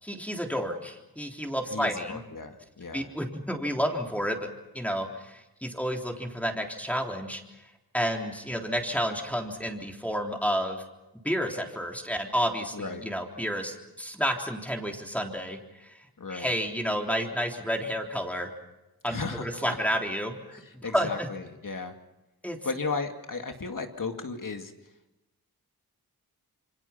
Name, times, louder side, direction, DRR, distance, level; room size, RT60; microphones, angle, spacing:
voice 1, 0.0-2.2 2.9-4.5 4.7-7.4 7.9-10.8 11.2-18.5 19.0-20.4 20.7-21.3 22.4-22.6, equal, 5° left, 2 dB, 3.7 m, -30 dB
voice 2, 1.7-3.1 12.7-13.0 16.2-16.5 19.1-19.8 20.5-21.9 22.6-24.7, left 4 dB, 55° left, 5 dB, 2.5 m, -35 dB
28.0 x 24.5 x 5.9 m, 0.99 s
cardioid pair, 60°, 37 cm